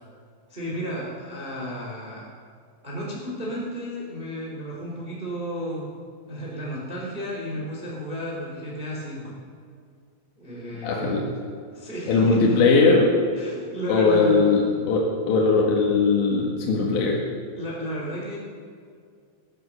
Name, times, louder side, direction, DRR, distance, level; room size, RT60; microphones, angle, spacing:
voice 1, 0.5-2.2 2.8-5.9 6.2-9.4 10.4-11.3 11.7-12.8 13.3-14.4 17.6-18.4, equal, 15° right, -4 dB, 2.7 m, -33 dB
voice 2, 10.8-11.3 12.1-13.1 13.9-17.2, left 4 dB, 65° left, -3 dB, 3.8 m, -20 dB
20.0 x 11.0 x 6.4 m, 2.2 s
omnidirectional pair, 6.0 m